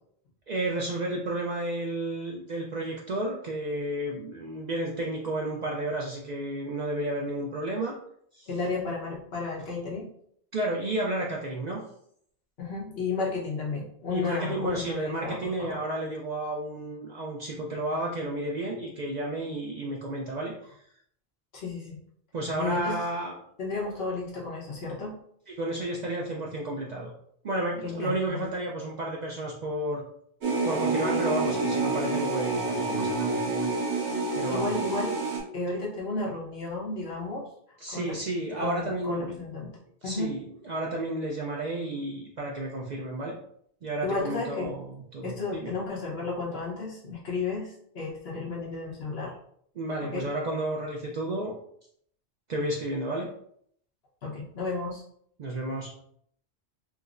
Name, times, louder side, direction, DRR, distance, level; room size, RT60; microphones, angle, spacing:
voice 1, 0.5-8.0 8.3-8.5 10.5-11.8 14.1-20.8 22.3-23.4 25.5-27.1 27.4-30.0 30.6-33.7 34.3-34.7 37.8-39.3 40.0-43.3 43.8-45.7 49.8-51.5 52.5-53.3 55.4-55.9, right 1 dB, 55° right, -2 dB, 0.5 m, -32 dB
voice 2, 8.5-10.1 12.6-15.8 21.5-22.0 22.6-23.0 23.6-25.1 27.8-28.5 34.5-35.2 35.5-37.5 37.9-38.2 38.6-39.8 40.0-40.3 44.0-44.8 45.2-49.4 50.0-50.3 54.2-55.0, left 3 dB, 65° left, -4 dB, 1.1 m, -33 dB
sound 1, 30.4-35.4, right 3 dB, 85° right, 1.3 m, -28 dB
4.6 x 2.0 x 2.5 m, 0.67 s
omnidirectional pair, 1.1 m